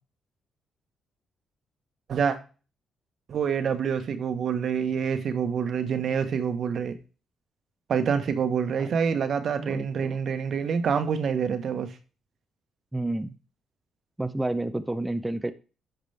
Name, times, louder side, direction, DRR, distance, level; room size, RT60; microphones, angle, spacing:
voice 1, 3.3-7.0 7.9-11.9, right 7 dB, 60° right, 1.2 m, -26 dB
voice 2, 9.6-10.2 12.9-13.4 14.2-15.5, right 2 dB, 10° right, 0.6 m, -30 dB
12.0 x 5.1 x 3.4 m
cardioid pair, 90°, 0 cm